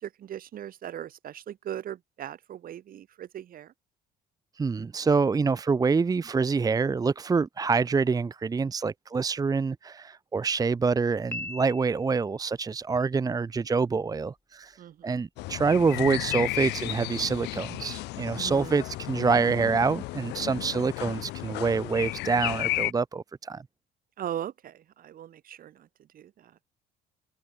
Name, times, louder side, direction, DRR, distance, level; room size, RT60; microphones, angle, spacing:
voice 1, 0.0-3.7 14.8-15.2 18.3-18.7 20.4-20.7 24.2-25.9 26.1-26.5, right 11 dB, 55° right, 4.7 m, -39 dB
voice 2, 4.6-14.8 15.0-23.6, right 4 dB, 20° right, 0.8 m, -26 dB
Piano, 11.3-12.4, left 2 dB, 15° left, 3.5 m, -39 dB
sound 1, 15.4-22.9, left 20 dB, 90° left, 1.6 m, -33 dB
open air
cardioid pair, 110°, 17 cm